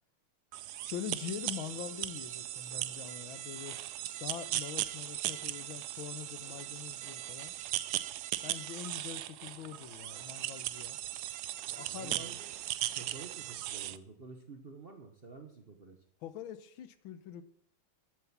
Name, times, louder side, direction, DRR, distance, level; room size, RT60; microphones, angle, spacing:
sound 1, 0.5-14.0, right 13 dB, 75° right, 0.9 m, -38 dB
voice 1, 0.8-7.5 8.4-11.0 11.8-12.4 16.2-17.4, left 9 dB, 75° left, 13 dB, 1.6 m, -44 dB
voice 2, 11.9-12.5 13.0-16.0, right 4 dB, 40° right, 5 dB, 1.0 m, -50 dB
11.0 x 8.1 x 7.2 m, 0.71 s
omnidirectional pair, 2.3 m